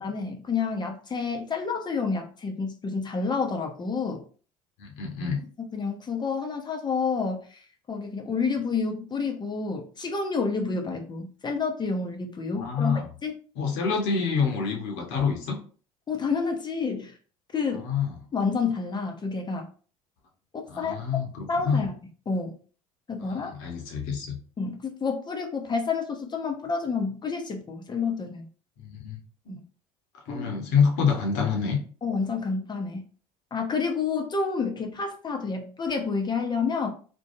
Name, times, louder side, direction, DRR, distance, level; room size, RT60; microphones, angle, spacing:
voice 1, 0.0-4.2 5.7-7.6 7.9-13.3 16.1-17.1 17.5-17.9 18.3-19.7 20.8-20.9 21.5-21.9 22.3-22.5 23.1-23.5 24.6-28.5 29.5-29.6 30.3-30.6 32.0-33.1 33.5-36.9, left 5 dB, 25° left, 2 dB, 0.6 m, -29 dB
voice 2, 4.8-5.4 12.5-13.1 13.6-15.6 17.7-18.1 20.7-21.8 23.2-24.4 28.8-29.2 29.5-29.6 30.3-31.8, left 5 dB, 65° left, 2 dB, 0.9 m, -27 dB
2.6 x 2.2 x 2.5 m, 0.40 s
hypercardioid pair, 70°, 17 cm